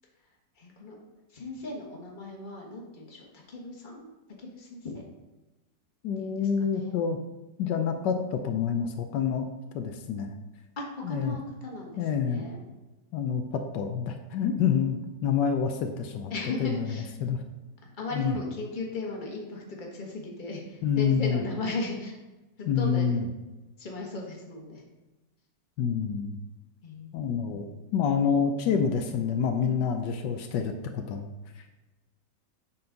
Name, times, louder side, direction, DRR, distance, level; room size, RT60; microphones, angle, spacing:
voice 1, 0.6-1.0 1.3-4.1 4.4-5.0 6.2-7.0 10.8-12.6 16.3-17.1 17.8-22.1 22.8-23.2 23.8-24.8 26.8-27.8, left 2 dB, 30° left, -1 dB, 1.4 m, -37 dB
voice 2, 6.0-7.2 7.6-10.3 11.0-11.4 12.0-12.4 13.1-16.3 16.6-17.4 18.1-18.4 20.8-21.4 22.7-23.2 25.8-26.4 27.1-31.7, left 7 dB, 80° left, 5 dB, 1.3 m, -28 dB
7.7 x 5.7 x 3.9 m, 1.1 s
omnidirectional pair, 1.9 m